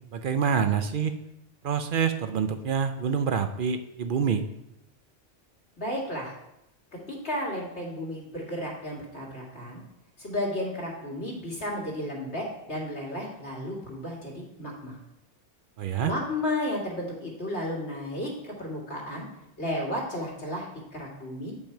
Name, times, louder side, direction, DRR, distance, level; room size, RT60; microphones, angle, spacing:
voice 1, 0.1-1.2 1.6-4.5 15.8-16.1, right 7 dB, 60° right, 8 dB, 0.6 m, -26 dB
voice 2, 5.8-6.3 7.1-9.8 10.2-15.0 16.0-19.3 19.6-20.7 20.9-21.5, left 1 dB, 85° left, -3 dB, 2.5 m, -33 dB
8.9 x 5.3 x 4.5 m, 0.86 s
omnidirectional pair, 1.1 m